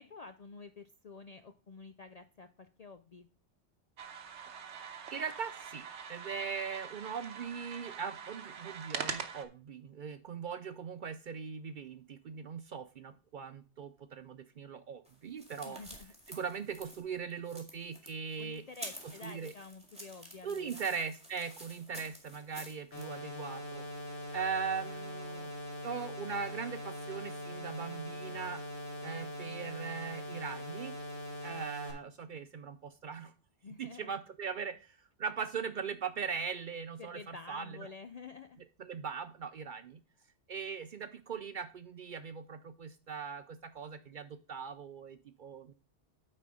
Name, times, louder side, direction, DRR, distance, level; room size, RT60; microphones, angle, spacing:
voice 1, 0.0-3.3 15.6-16.1 18.4-20.8 33.6-34.1 37.0-38.6, left 4 dB, 55° left, 9 dB, 0.4 m, -49 dB
sound 1, 4.0-9.5, right 7 dB, 75° right, 1.1 m, -43 dB
voice 2, 5.1-15.8 16.3-18.6 19.2-19.5 20.4-23.9 24.3-25.5 25.8-28.6 29.0-30.9 31.4-33.3 33.8-37.9 38.8-40.0 40.5-45.7, right 6 dB, 55° right, 11 dB, 0.6 m, -40 dB
sound 2, 15.1-23.1, right 1 dB, 5° right, 1.9 m, -50 dB
sound 3, 22.9-31.9, equal, 70° left, 3.0 m, -42 dB
9.1 x 4.3 x 4.9 m, 0.35 s
omnidirectional pair, 1.2 m